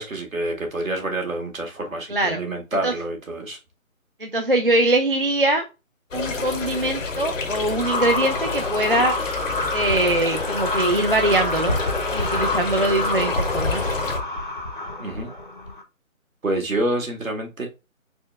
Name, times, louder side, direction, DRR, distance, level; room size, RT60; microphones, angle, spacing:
voice 1, 0.0-3.6 15.0-15.3 16.4-17.7, right 1 dB, 70° right, 3 dB, 1.7 m, -27 dB
voice 2, 2.1-2.4 2.8-2.9 4.2-5.6 6.1-9.1 9.7-11.7 12.1-13.9, right 1 dB, 40° right, 3 dB, 0.4 m, -22 dB
sound 1, 6.1-14.2, left 4 dB, 65° left, 1.0 m, -29 dB
sound 2, 7.8-15.8, left 2 dB, 35° left, 0.6 m, -27 dB
4.4 x 3.1 x 3.3 m, 0.27 s
figure-of-eight pair, 165°, 42 cm